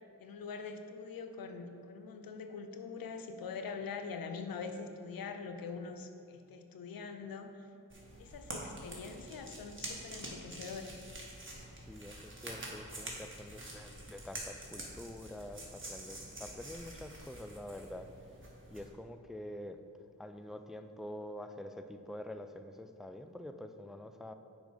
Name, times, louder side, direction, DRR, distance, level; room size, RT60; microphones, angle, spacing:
voice 1, 0.2-7.7 8.2-11.1, left 5 dB, 90° left, 7 dB, 0.5 m, -44 dB
sound 1, 7.9-18.9, right 1 dB, 35° right, 1.6 m, -47 dB
voice 2, 11.8-18.1 18.7-19.8 20.2-24.3, left 1 dB, ahead, 8 dB, 0.3 m, -46 dB
6.2 x 5.1 x 5.1 m, 2.6 s
cardioid pair, 40°, 34 cm